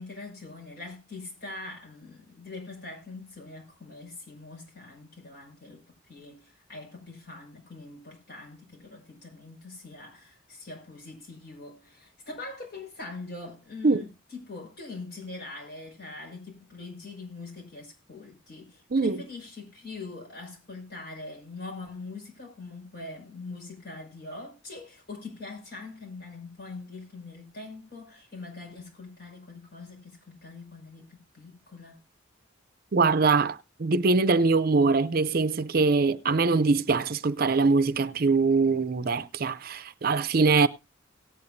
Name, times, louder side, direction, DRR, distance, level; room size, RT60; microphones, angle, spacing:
voice 1, 0.0-32.0, left 3 dB, 55° left, 5.7 m, -43 dB
voice 2, 18.9-19.2 32.9-40.7, right 4 dB, 45° right, 0.5 m, -23 dB
18.0 x 8.9 x 2.6 m
head